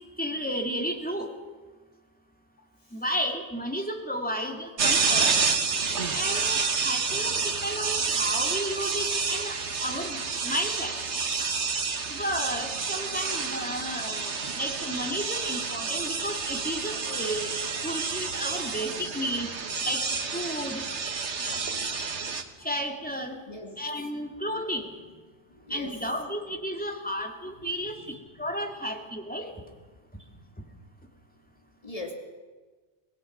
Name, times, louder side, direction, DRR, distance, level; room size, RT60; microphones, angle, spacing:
voice 1, 0.2-1.3 2.9-5.4 6.1-11.0 12.1-17.5 17.8-19.5 19.8-20.0 20.3-20.8 22.6-23.4 23.8-25.0 25.7-27.9 28.4-29.5, equal, 5° left, 2 dB, 2.3 m, -32 dB
sound 1, 4.8-22.4, right 5 dB, 75° right, 1.7 m, -29 dB
voice 2, 21.5-21.9 22.2-22.3 23.5-23.8 25.5-26.1 27.6-28.2 30.2-30.5 31.8-32.1, left 2 dB, 30° left, 1 dB, 3.0 m, -43 dB
25.0 x 19.0 x 6.0 m, 1.3 s
omnidirectional pair, 1.2 m